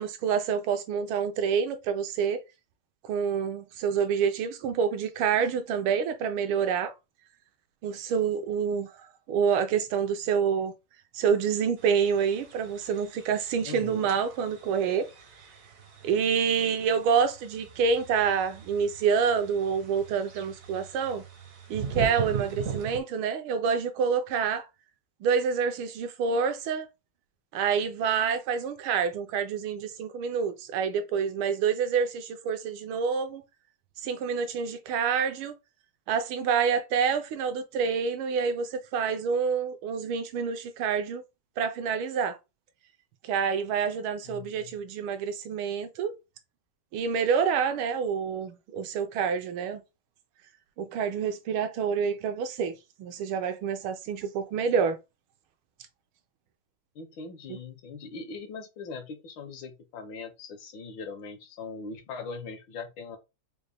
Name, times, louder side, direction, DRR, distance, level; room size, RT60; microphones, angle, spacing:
voice 1, 0.0-2.4 3.1-6.9 7.8-8.9 9.3-10.7 11.1-15.1 16.0-21.2 21.7-24.6 25.2-26.9 27.5-33.4 34.0-35.5 36.1-41.2 41.6-42.4 43.2-46.1 46.9-49.8 50.8-55.0 57.5-57.6, right 6 dB, 75° right, 1.4 m, -27 dB
sound 1, 11.8-23.0, right 7 dB, 60° right, 0.9 m, -40 dB
voice 2, 13.6-14.1 44.2-44.7 56.9-63.2, left 4 dB, 70° left, 1.3 m, -41 dB
5.3 x 2.1 x 3.3 m
omnidirectional pair, 2.4 m